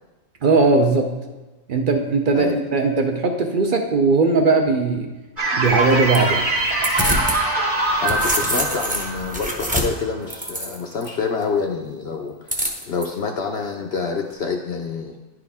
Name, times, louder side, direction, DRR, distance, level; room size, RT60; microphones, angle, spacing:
voice 1, 0.4-1.2 1.7-5.1 5.6-6.5, right 3 dB, 55° right, 4 dB, 0.6 m, -19 dB
sound 1, 5.4-10.4, right 2 dB, 40° right, 1.1 m, -23 dB
sound 2, 5.6-7.4 7.8-11.1 12.5-13.1, equal, 10° right, 0.5 m, -26 dB
voice 2, 8.0-15.2, left 5 dB, 65° left, 3 dB, 0.7 m, -27 dB
10.5 x 4.9 x 3.5 m, 1.2 s
omnidirectional pair, 1.5 m